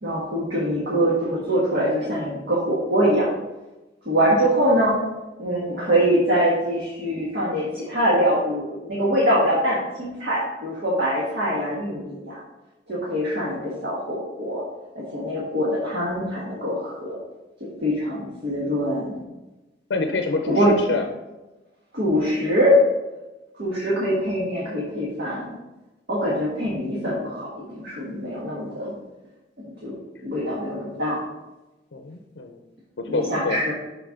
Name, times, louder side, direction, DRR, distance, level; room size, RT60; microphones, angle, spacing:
voice 1, 0.0-3.3 4.0-5.0 5.4-12.4 12.9-14.6 14.9-17.1 17.6-19.1 20.5-20.7 21.9-22.7 23.6-25.6 26.1-28.9 29.6-29.9 30.2-31.1 33.1-33.7, equal, 65° right, -7 dB, 1.7 m, -23 dB
voice 2, 19.9-21.0 31.9-32.6 33.0-33.6, left 3 dB, 85° left, 4 dB, 0.6 m, -26 dB
6.7 x 6.0 x 3.8 m, 1.1 s
head